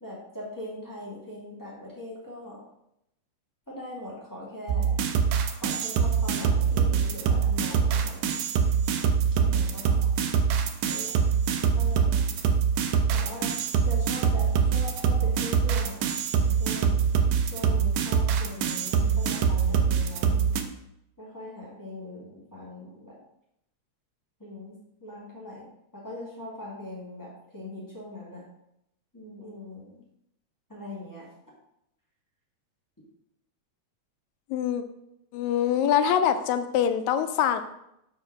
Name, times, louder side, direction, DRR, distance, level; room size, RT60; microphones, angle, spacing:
voice 1, 0.0-2.6 3.7-4.9 5.5-8.4 9.3-10.1 10.8-11.2 11.7-12.3 13.1-13.5 13.8-16.0 16.4-17.0 17.5-20.5 21.2-23.2 24.4-25.7 25.9-28.4 29.1-30.0 30.7-31.3, left 1 dB, 10° left, -6 dB, 0.8 m, -41 dB
sound 1, 4.7-20.6, right 6 dB, 80° right, 1.7 m, -24 dB
voice 2, 34.5-34.8 35.3-37.6, left 9 dB, 80° left, 9 dB, 1.9 m, -24 dB
5.1 x 4.6 x 5.9 m, 0.81 s
omnidirectional pair, 3.3 m